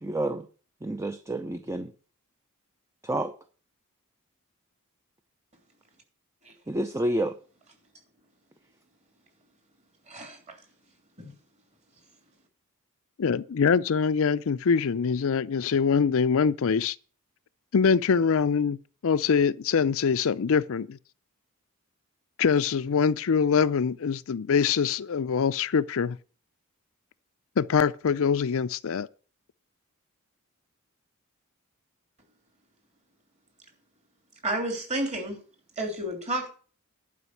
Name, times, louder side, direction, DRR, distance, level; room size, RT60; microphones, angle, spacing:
voice 1, 0.0-0.5 0.8-1.9 3.0-3.3 6.7-7.4, right 1 dB, 15° right, 0.6 m, -29 dB
voice 2, 10.1-10.5 11.2-11.3 34.4-35.4 35.8-36.5, right 1 dB, 30° right, 3.1 m, -31 dB
voice 3, 13.2-17.0 17.7-18.8 19.0-21.0 22.4-26.2 27.6-29.1, left 6 dB, 65° left, 0.5 m, -24 dB
11.0 x 5.2 x 8.3 m
head